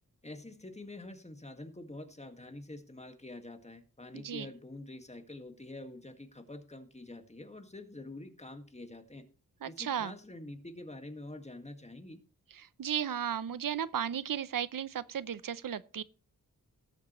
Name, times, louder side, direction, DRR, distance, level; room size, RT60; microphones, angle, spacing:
voice 1, 0.2-9.3 9.7-12.2, left 2 dB, 20° left, 1.9 m, -46 dB
voice 2, 9.6-10.1 12.8-16.0, right 9 dB, 70° right, 0.7 m, -34 dB
18.5 x 7.4 x 3.1 m
wide cardioid pair, 75°, 35 cm